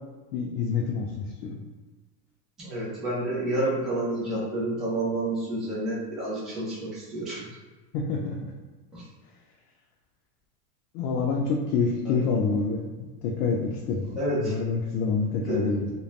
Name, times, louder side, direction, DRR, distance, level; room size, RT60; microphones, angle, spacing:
voice 1, 0.3-1.6 7.9-8.5 10.9-12.8 13.2-14.1 14.4-15.9, left 4 dB, 65° left, 0 dB, 0.5 m, -27 dB
voice 2, 2.6-7.4 8.9-9.0 12.0-12.2 14.1-14.5 15.5-15.7, right 1 dB, ahead, -9 dB, 0.4 m, -29 dB
2.4 x 2.2 x 3.2 m, 1.3 s
supercardioid pair, 135°, 47 cm